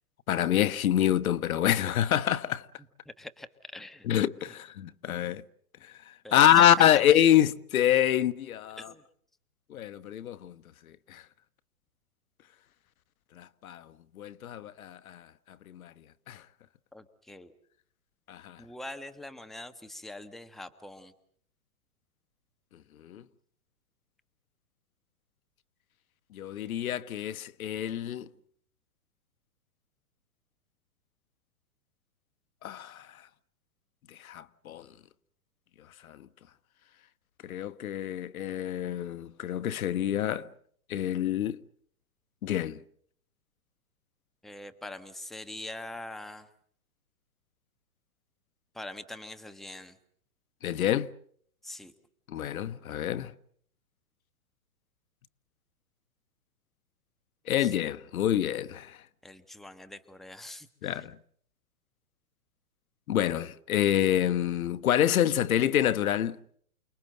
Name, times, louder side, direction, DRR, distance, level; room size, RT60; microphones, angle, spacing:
voice 1, 0.3-2.7 4.1-5.4 5.8-8.9 9.7-10.5 11.1-11.2 13.4-15.9 16.3-16.4 18.3-18.6 23.0-23.2 26.3-28.3 32.6-33.1 34.1-34.9 36.0-36.3 37.4-40.5 40.9-41.6 42.4-42.8 50.6-51.1 52.3-53.3 57.5-59.0 60.8-61.2 63.1-66.4, left 11 dB, 65° left, 1.2 m, -27 dB
voice 2, 3.0-4.1 6.2-6.7 8.8-9.0 16.9-17.5 18.6-21.1 44.4-46.5 48.7-50.0 51.6-51.9 57.6-57.8 59.2-61.0, left 1 dB, ahead, 1.2 m, -43 dB
29.0 x 20.5 x 7.8 m
hypercardioid pair, 130°, 44 cm